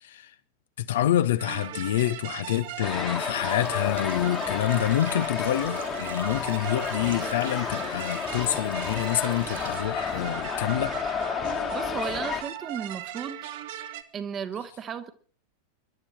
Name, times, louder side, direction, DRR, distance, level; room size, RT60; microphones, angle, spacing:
voice 1, 0.0-0.3 0.8-11.0, left 12 dB, 60° left, 0.8 m, -27 dB
sound 1, 1.4-14.0, right 12 dB, 50° right, 1.1 m, -38 dB
Water / Sink (filling or washing), 2.4-11.0, right 6 dB, 70° right, 4.0 m, -45 dB
sound 2, 2.8-12.4, left 7 dB, 25° left, 1.6 m, -31 dB
voice 2, 11.7-13.4 14.1-15.1, right 7 dB, 25° right, 1.3 m, -34 dB
25.5 x 11.5 x 4.4 m
figure-of-eight pair, 90°, 0 cm